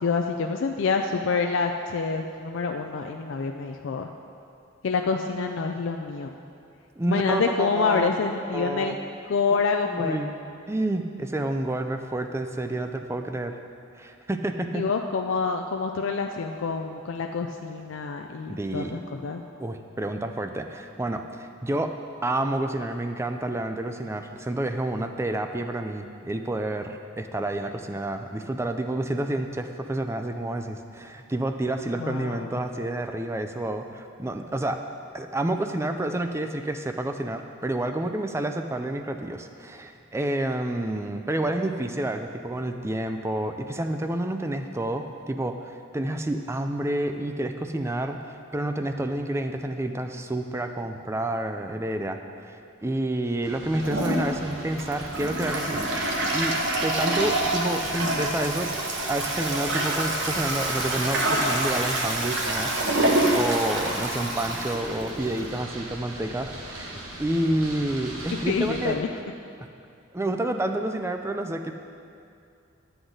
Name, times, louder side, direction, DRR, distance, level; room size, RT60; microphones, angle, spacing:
voice 1, 0.0-4.1 4.8-6.3 7.1-9.0 9.3-10.2 14.7-19.4 32.0-32.5 68.3-69.1, left 5 dB, 60° left, 3 dB, 0.4 m, -27 dB
voice 2, 7.0-8.2 8.5-8.9 9.5-9.6 9.8-10.3 10.7-13.5 14.0-14.8 18.5-19.0 19.6-22.0 22.2-34.8 35.1-55.9 56.3-56.6 56.8-69.2 69.6-69.7 70.1-71.7, right 1 dB, 10° right, 6 dB, 0.4 m, -29 dB
Marseille Street, 53.4-69.0, right 1 dB, 85° right, 1.4 m, -40 dB
Toilet flush, 53.8-65.6, right 1 dB, 55° right, 1.1 m, -27 dB
11.5 x 8.0 x 3.9 m, 2.5 s
head